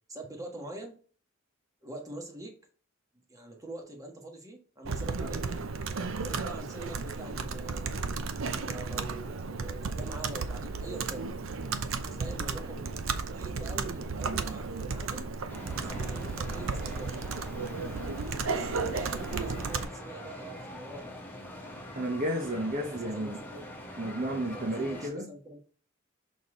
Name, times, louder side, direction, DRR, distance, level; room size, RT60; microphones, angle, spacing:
voice 1, 0.1-1.0 1.8-2.6 3.3-5.4 6.1-8.0 8.4-11.3 12.1-13.0 13.3-15.3 15.7-17.2 18.5-21.1 22.8-23.6 24.5-25.6, right 2 dB, 15° right, 1.3 m, -44 dB
Computer keyboard, 4.9-19.9, right 4 dB, 85° right, 0.6 m, -34 dB
sound 1, 15.5-25.1, left 1 dB, 10° left, 1.4 m, -43 dB
voice 2, 22.0-23.4 24.0-25.3, right 1 dB, 45° right, 0.9 m, -32 dB
6.4 x 4.1 x 3.7 m
head